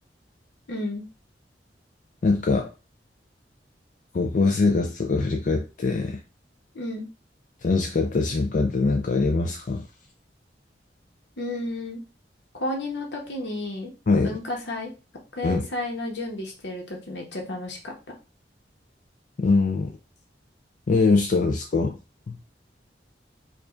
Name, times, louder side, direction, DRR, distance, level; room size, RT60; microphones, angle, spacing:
voice 1, 0.7-1.0 6.7-7.1 11.4-12.0 12.5-13.9 14.2-14.9 15.4-17.9, left 2 dB, 75° left, 1 dB, 1.0 m, -32 dB
voice 2, 2.2-2.7 4.1-6.2 7.6-9.8 14.1-14.4 15.4-15.7 19.4-19.9 20.9-22.0 22.3-22.4, left 3 dB, 50° left, 3 dB, 0.4 m, -22 dB
4.9 x 2.4 x 2.5 m, 0.31 s
head